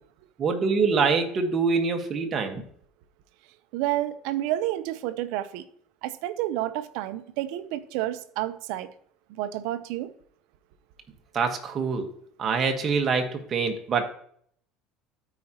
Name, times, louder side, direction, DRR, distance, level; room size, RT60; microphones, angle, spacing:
voice 1, 0.4-2.6 11.3-12.1 12.4-14.0, right 5 dB, 35° right, 5 dB, 1.3 m, -25 dB
voice 2, 3.7-5.6 6.0-8.9 9.4-10.1, right 14 dB, 75° right, 11 dB, 0.6 m, -30 dB
13.0 x 5.0 x 2.9 m, 0.63 s
cardioid pair, 135°, 0 cm